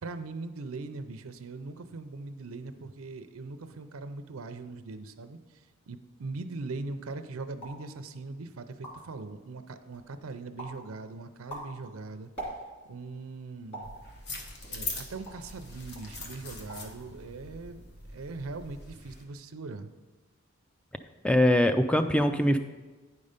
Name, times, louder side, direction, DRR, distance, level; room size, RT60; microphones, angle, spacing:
voice 1, 0.0-12.3 12.9-13.9 14.6-17.8 18.1-19.9, right 3 dB, 75° right, 9 dB, 0.5 m, -41 dB
sound 1, 7.6-7.9 8.4-8.5 8.7-9.2 9.7-10.1 10.6-10.8 11.3-12.9 13.7-14.0 14.6-15.5 15.9-16.1 16.5-17.0 17.2-17.7, right 1 dB, 25° left, 2.2 m, -43 dB
sound 2, 13.8-19.2, left 3 dB, 50° left, 1.1 m, -42 dB
voice 2, 21.2-22.6, left 1 dB, 5° left, 8 dB, 0.3 m, -22 dB
9.6 x 5.4 x 5.1 m, 1.3 s
head